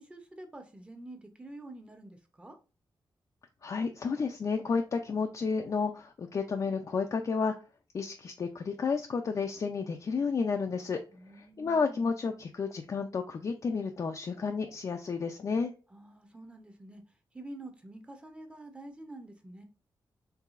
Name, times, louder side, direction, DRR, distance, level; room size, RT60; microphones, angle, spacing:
voice 1, 0.0-2.6 11.1-12.1 15.9-17.0 17.3-19.6, right 1 dB, 15° right, 6 dB, 0.7 m, -47 dB
voice 2, 3.6-7.5 7.9-11.0 11.4-15.7, left 5 dB, 45° left, 4 dB, 0.4 m, -31 dB
4.7 x 3.2 x 2.5 m, 0.34 s
wide cardioid pair, 135°, 8 cm